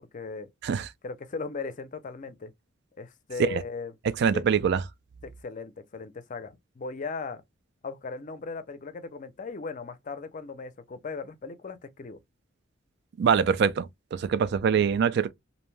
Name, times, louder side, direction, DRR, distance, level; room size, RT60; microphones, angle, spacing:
voice 1, 0.1-0.5 1.0-2.5 3.0-3.9 4.3-4.4 5.2-7.4 7.8-12.2, left 4 dB, 40° left, 0.5 m, -38 dB
voice 2, 4.2-4.8 13.2-15.3, right 7 dB, 60° right, 0.3 m, -24 dB
2.6 x 2.1 x 3.1 m
head